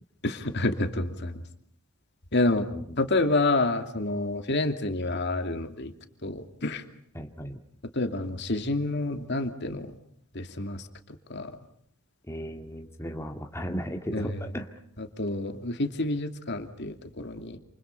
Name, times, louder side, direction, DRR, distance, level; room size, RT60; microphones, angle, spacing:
voice 1, 0.2-1.4 2.3-2.7 3.0-5.9 6.2-6.8 7.9-9.9 10.3-10.9 11.3-11.6 14.1-14.4 15.0-17.6, left 2 dB, 55° left, 6 dB, 2.7 m, -28 dB
voice 2, 7.1-7.6 12.3-14.7, equal, 15° left, 3 dB, 2.2 m, -35 dB
29.0 x 29.0 x 5.6 m, 0.67 s
head